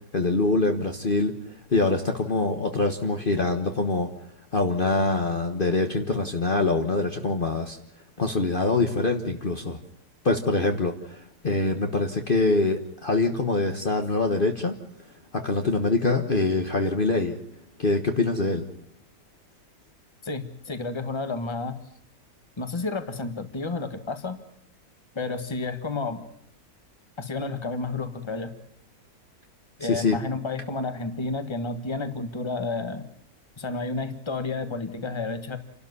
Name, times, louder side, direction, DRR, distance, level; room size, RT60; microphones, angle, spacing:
voice 1, 0.1-1.3 1.7-4.1 4.5-7.8 8.2-9.8 10.2-14.7 15.3-17.4 17.8-18.7 29.9-30.2, left 3 dB, 35° left, 4 dB, 1.4 m, -24 dB
voice 2, 20.2-21.8 22.6-24.4 25.1-26.2 27.2-28.5 29.8-33.1 33.6-35.6, left 3 dB, 20° left, 9 dB, 1.5 m, -31 dB
29.0 x 12.5 x 9.6 m, 0.70 s
omnidirectional pair, 1.6 m